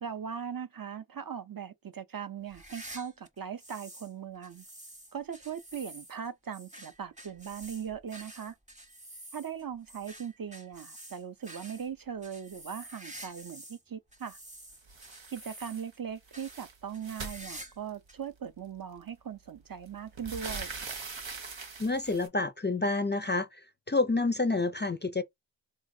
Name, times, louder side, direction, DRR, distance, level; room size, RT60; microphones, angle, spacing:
voice 1, 0.0-4.6 5.1-8.5 9.3-14.4 15.3-20.7, right 7 dB, 50° right, 0.5 m, -39 dB
sound 1, 2.4-4.1 4.4-13.8 14.1-16.0 16.3-16.6 16.9-17.8 18.1-18.2 19.0-19.1 20.3-20.4, right 1 dB, 15° right, 0.8 m, -49 dB
sound 2, 14.9-15.9 16.2-18.1 19.1-19.2 19.6-22.3, right 4 dB, 85° right, 0.9 m, -42 dB
voice 2, 21.8-23.6 23.9-25.2, left 3 dB, 25° left, 0.4 m, -28 dB
3.9 x 2.5 x 2.6 m
wide cardioid pair, 50°, 44 cm